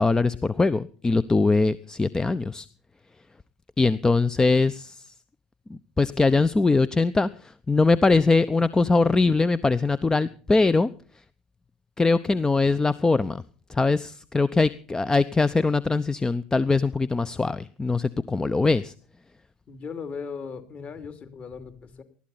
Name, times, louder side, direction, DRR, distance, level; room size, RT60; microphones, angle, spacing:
voice 1, 0.0-2.7 3.8-5.0 5.7-10.9 12.0-13.4 13.7-18.9, left 3 dB, 15° left, 16 dB, 0.7 m, -22 dB
voice 2, 19.7-22.0, left 5 dB, 35° left, 9 dB, 2.9 m, -38 dB
20.0 x 14.0 x 4.2 m, 0.42 s
figure-of-eight pair, 65°, 4 cm